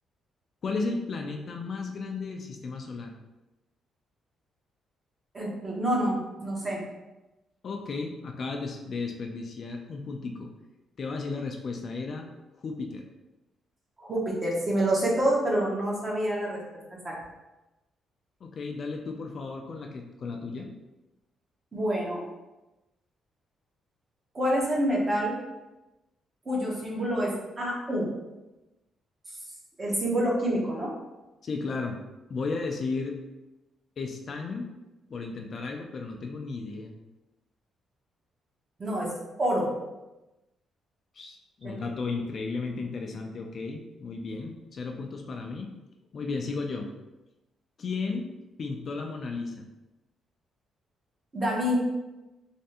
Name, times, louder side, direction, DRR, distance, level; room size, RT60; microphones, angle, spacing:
voice 1, 0.6-3.1 7.6-10.5 11.0-12.3 12.6-13.0 18.4-20.7 31.4-32.0 32.3-33.2 34.0-34.7 35.1-36.9 41.1-45.7 46.1-46.9 47.8-48.3 48.6-49.7, left 4 dB, 40° left, 2 dB, 0.4 m, -34 dB
voice 2, 5.3-6.8 14.0-16.6 17.0-17.1 21.7-22.3 24.3-25.3 26.4-27.3 27.6-28.1 29.8-30.9 38.8-39.1 39.4-39.7 41.6-41.7 51.3-51.8, right 1 dB, 25° right, -3 dB, 0.9 m, -27 dB
3.4 x 3.1 x 2.8 m, 1.0 s
cardioid pair, 145°, 0 cm